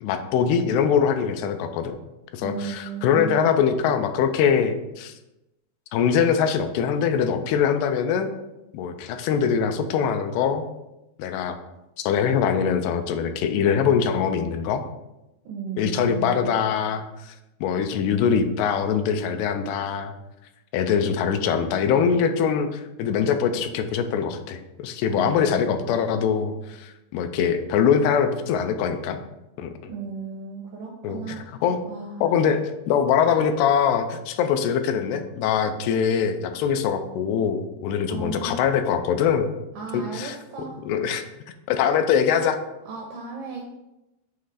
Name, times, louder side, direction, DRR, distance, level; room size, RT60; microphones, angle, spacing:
voice 1, 0.0-1.9 2.3-5.1 5.9-8.3 8.7-10.6 11.2-11.6 12.0-14.9 15.8-17.3 17.6-20.1 20.7-29.2 29.6-29.9 31.0-31.8 32.2-39.5 39.9-40.4 40.9-41.2 41.7-42.6, left 7 dB, 85° left, 7 dB, 2.6 m, -23 dB
voice 2, 2.4-3.4 15.5-16.7 25.1-25.9 29.9-31.6 31.9-32.3 38.1-38.6 39.8-40.8 42.9-43.7, right 5 dB, 80° right, 0 dB, 1.9 m, -35 dB
7.8 x 3.2 x 4.9 m, 0.94 s
omnidirectional pair, 4.7 m